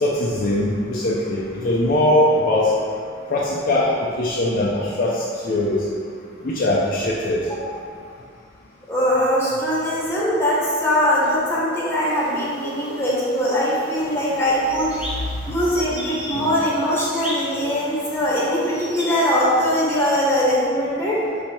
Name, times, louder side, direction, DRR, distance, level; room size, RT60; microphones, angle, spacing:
voice 1, 0.0-2.7 3.3-5.9 6.4-7.4 16.3-16.5, left 1 dB, 45° left, -5 dB, 0.4 m, -21 dB
voice 2, 8.9-15.1 15.5-21.2, equal, 15° left, -7 dB, 1.1 m, -21 dB
sound 1, 12.0-20.4, equal, 5° right, 1.0 m, -37 dB
4.4 x 2.7 x 4.2 m, 2.1 s
head